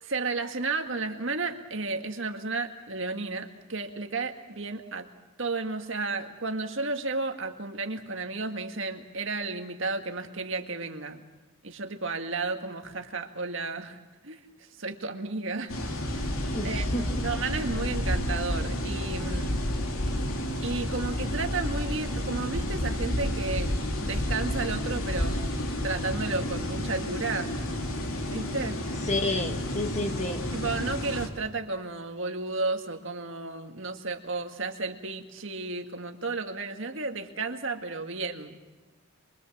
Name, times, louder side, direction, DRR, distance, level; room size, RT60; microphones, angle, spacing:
voice 1, 0.0-5.1 5.4-11.2 11.6-14.4 14.8-15.8 16.1-16.3 16.6-16.9 17.2-19.6 20.6-25.4 25.8-27.5 28.3-28.8 30.5-38.6, right 3 dB, 55° right, 5 dB, 1.9 m, -33 dB
sound 1, 15.7-31.3, left 1 dB, 70° left, 2.7 m, -30 dB
voice 2, 16.5-17.2 29.0-30.4, left 2 dB, 30° left, 6 dB, 1.8 m, -30 dB
24.0 x 24.0 x 7.3 m, 1.2 s
head